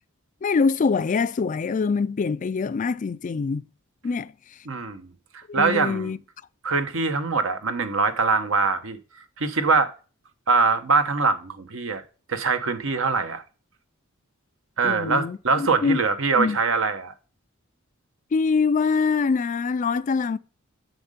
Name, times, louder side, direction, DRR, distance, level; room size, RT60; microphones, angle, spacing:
voice 1, 0.4-3.6 4.0-4.3 5.5-6.2 14.8-16.0 16.4-16.6 18.3-20.4, left 5 dB, 35° left, 0.3 m, -24 dB
voice 2, 4.6-5.1 5.3-6.1 6.6-9.0 9.4-9.9 10.5-12.0 12.3-13.4 14.8-17.1, right 4 dB, 70° right, 1.0 m, -23 dB
7.9 x 6.5 x 5.0 m
head